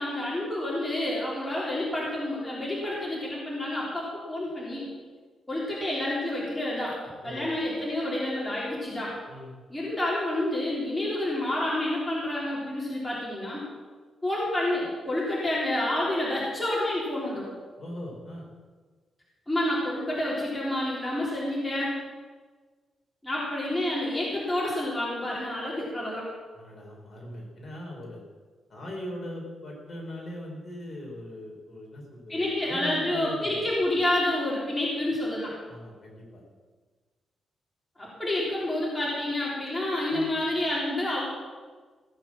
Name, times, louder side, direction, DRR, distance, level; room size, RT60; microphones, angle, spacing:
voice 1, 0.0-4.8 5.5-6.9 7.2-9.1 9.7-13.6 14.2-17.5 19.5-21.9 23.2-26.3 32.3-35.5 38.0-41.2, left 1 dB, 10° left, -6 dB, 3.7 m, -29 dB
voice 2, 7.2-7.6 9.3-9.5 17.8-18.5 26.5-28.2 28.7-33.6 35.7-36.4 40.1-40.3, left 1 dB, 30° left, -2 dB, 4.3 m, -40 dB
16.5 x 9.1 x 7.4 m, 1.4 s
wide cardioid pair, 155°, 0 cm